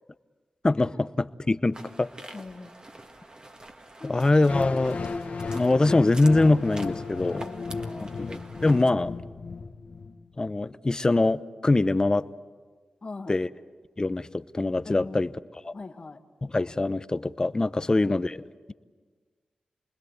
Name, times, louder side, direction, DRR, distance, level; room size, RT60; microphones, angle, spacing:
voice 1, 0.6-2.1 4.0-5.0 5.5-7.5 8.0-9.1 10.4-12.3 13.3-13.5 14.0-15.3 15.6-15.7 16.4-18.4, left 2 dB, 30° left, 14 dB, 0.8 m, -23 dB
sound 1, 1.7-8.9, right 1 dB, 35° right, 1.8 m, -46 dB
voice 2, 2.3-2.8 4.0-4.2 7.3-8.3 13.0-13.4 14.9-15.4 15.7-16.2 17.8-18.1, left 3 dB, 45° left, 6 dB, 1.7 m, -42 dB
sound 2, 4.5-10.5, left 4 dB, 65° left, 1.3 m, -35 dB
29.0 x 21.0 x 8.1 m, 1.5 s
cardioid pair, 60°, 3 cm